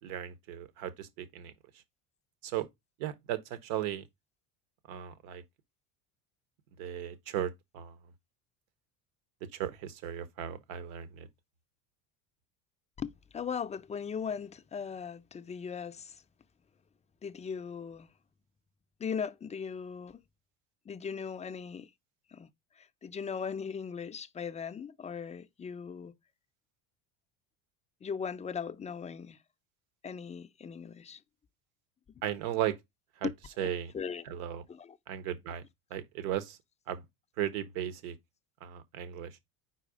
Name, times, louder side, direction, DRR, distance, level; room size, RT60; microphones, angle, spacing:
voice 1, 0.0-1.5 2.4-2.7 3.0-4.0 4.9-5.4 6.8-8.0 9.5-11.3 32.2-32.8 33.2-33.3 33.6-33.9 34.2-34.6 35.1-35.6 35.9-36.6 36.9-37.0 37.4-38.2 38.6-39.4, right 11 dB, 85° right, 1.0 m, -36 dB
voice 2, 13.0-16.2 17.2-18.1 19.0-20.2 20.9-21.9 22.3-22.5 22.8-26.1 28.0-29.4 30.0-31.2 33.2-34.2 34.7-35.0, left 6 dB, 15° left, 0.4 m, -38 dB
4.7 x 4.1 x 5.0 m
supercardioid pair, 100°, 41 cm